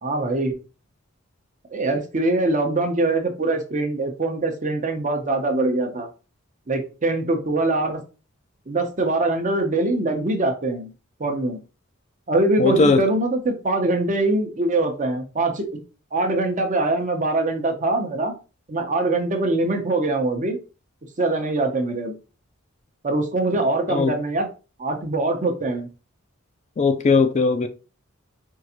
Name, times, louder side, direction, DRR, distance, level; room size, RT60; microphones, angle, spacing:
voice 1, 0.0-0.6 1.7-6.1 6.7-8.0 8.7-10.9 11.2-11.6 12.3-15.7 16.1-18.3 18.7-20.6 21.2-22.1 23.0-24.5 24.8-25.9, right 2 dB, 40° right, 0.7 m, -23 dB
voice 2, 12.6-13.0 23.9-24.1 26.8-27.7, left 4 dB, 35° left, 0.3 m, -18 dB
4.6 x 2.5 x 2.8 m
head